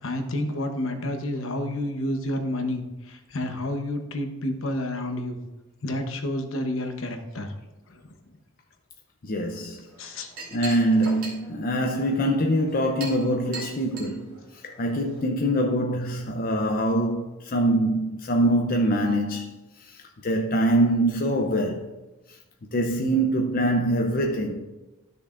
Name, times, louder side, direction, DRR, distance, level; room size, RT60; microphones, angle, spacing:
voice 1, 0.0-5.4 5.8-7.5 7.9-8.1 10.0-10.3, left 1 dB, 65° left, 1.0 m, -30 dB
voice 2, 9.2-9.8 10.5-19.5 19.8-21.9 22.3-22.4 22.7-24.6, right 1 dB, 40° left, 0.6 m, -24 dB
Chink clink, 9.9-15.2, right 2 dB, 70° right, 2.5 m, -41 dB
12.5 x 6.6 x 2.5 m
head